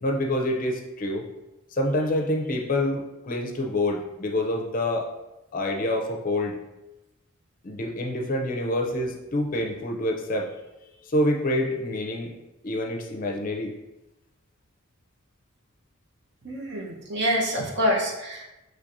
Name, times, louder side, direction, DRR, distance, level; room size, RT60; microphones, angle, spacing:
voice 1, 0.0-1.3 1.7-5.1 5.5-6.6 7.6-10.5 10.8-12.3 12.6-13.7, left 1 dB, 40° left, 2 dB, 0.5 m, -27 dB
voice 2, 16.4-18.4, equal, 55° right, -2 dB, 0.9 m, -26 dB
6.0 x 3.3 x 2.6 m, 0.99 s
head